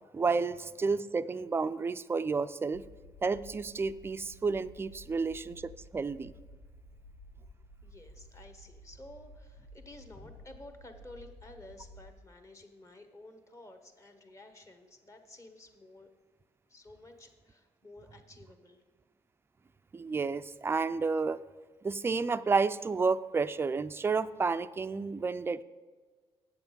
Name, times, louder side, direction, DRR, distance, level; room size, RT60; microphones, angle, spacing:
voice 1, 0.1-2.8 3.2-6.3 19.9-21.4 21.8-25.6, right 4 dB, 20° right, 13 dB, 0.3 m, -31 dB
sound 1, 2.7-12.1, equal, 90° left, 0.9 m, -53 dB
voice 2, 7.8-16.1 16.7-18.8, left 2 dB, 30° left, 6 dB, 1.2 m, -52 dB
8.4 x 7.1 x 5.3 m, 1.4 s
cardioid pair, 80°, 11 cm